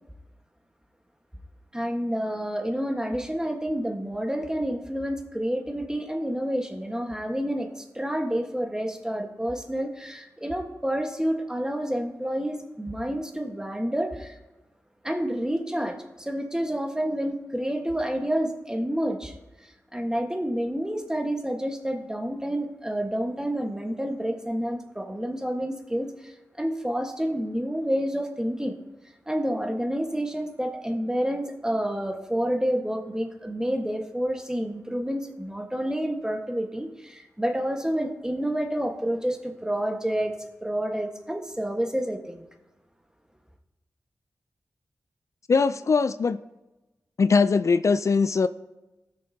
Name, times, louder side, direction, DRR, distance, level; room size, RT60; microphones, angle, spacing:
voice 1, 1.7-14.4 15.0-19.3 19.6-28.8 29.3-42.5, equal, 10° right, 4 dB, 1.3 m, -29 dB
voice 2, 45.5-46.4 47.2-48.5, left 4 dB, 55° left, 14 dB, 0.3 m, -21 dB
15.0 x 6.6 x 2.8 m, 1.1 s
cardioid pair, 40°, 6 cm